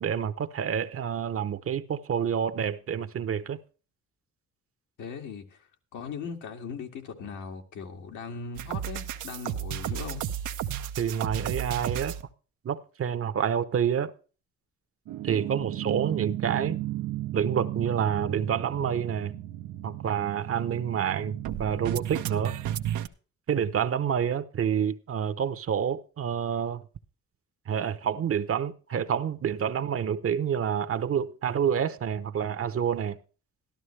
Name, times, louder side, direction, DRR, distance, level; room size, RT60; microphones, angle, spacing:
voice 1, 0.0-3.6 11.0-12.2 12.6-14.1 15.2-16.8 17.3-19.3 19.8-22.6 23.5-26.8 27.7-33.2, right 8 dB, 50° right, 0.9 m, -28 dB
voice 2, 5.0-5.6 5.9-10.3, left 5 dB, 80° left, 2.1 m, -39 dB
sound 1, 8.5-12.2 15.1-23.1, right 12 dB, 90° right, 0.8 m, -33 dB
13.0 x 12.5 x 3.3 m
cardioid pair, 90°, 30 cm